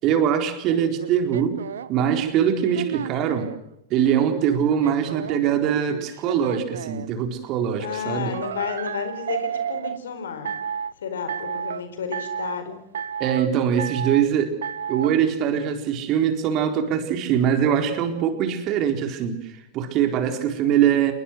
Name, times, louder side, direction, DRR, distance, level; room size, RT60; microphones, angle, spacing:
voice 1, 0.0-1.6 1.9-3.5 3.9-8.3 13.2-14.6 14.9-21.1, right 9 dB, 40° right, 6 dB, 4.2 m, -22 dB
sound 1, 0.6-3.6 4.1-7.1 8.3-10.0 10.5-10.9 11.3-11.8 12.1-12.6 12.9-13.5 13.8-14.3 14.6-15.1, right 8 dB, 65° right, 1.2 m, -31 dB
voice 2, 7.8-10.5 11.0-12.8, left 7 dB, 65° left, 9 dB, 4.7 m, -31 dB
28.5 x 21.5 x 6.4 m, 0.80 s
figure-of-eight pair, 90°, 0 cm